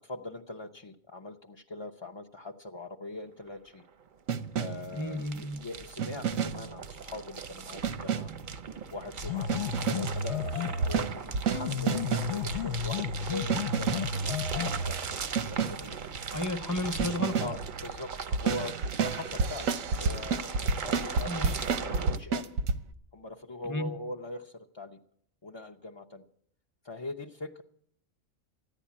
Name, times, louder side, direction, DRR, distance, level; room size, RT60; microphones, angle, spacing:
voice 1, 0.0-3.8 4.5-8.3 8.9-15.1 15.5-16.0 17.4-18.7 19.0-22.5 23.1-25.0 25.4-26.2 26.8-27.6, left 2 dB, 35° left, 2 dB, 0.4 m, -42 dB
sound 1, 3.5-3.6 3.7-22.2, right 5 dB, 45° right, 0.7 m, -39 dB
sound 2, 4.3-4.9 6.0-6.7 7.8-8.4 9.5-10.2 10.8-12.4 13.5-14.2 15.3-15.9 17.0-17.6 18.3-22.8, right 5 dB, 90° right, 1.2 m, -30 dB
voice 2, 4.9-5.6 16.3-17.5 21.3-21.5 23.6-23.9, left 1 dB, 15° left, 9 dB, 0.8 m, -32 dB
sound 3, 9.2-11.0 11.5-15.0, left 5 dB, 60° left, 0.9 m, -33 dB
14.0 x 10.5 x 8.4 m, 0.69 s
omnidirectional pair, 1.4 m